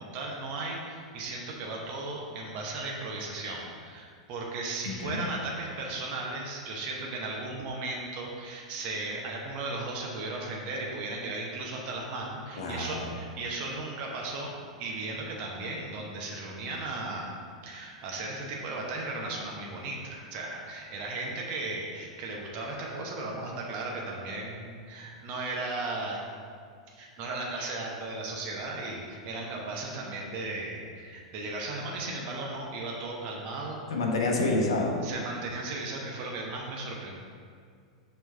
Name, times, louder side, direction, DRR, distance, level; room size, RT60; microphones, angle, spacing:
voice 1, 0.0-14.5 14.8-17.3 17.6-26.2 26.9-33.8 35.0-37.2, right 2 dB, 40° right, -2 dB, 0.9 m, -36 dB
voice 2, 4.9-5.3 12.6-13.1 33.9-35.0, left 2 dB, 65° left, 1 dB, 0.9 m, -28 dB
6.3 x 3.4 x 4.6 m, 2.1 s
figure-of-eight pair, 95°, 3 cm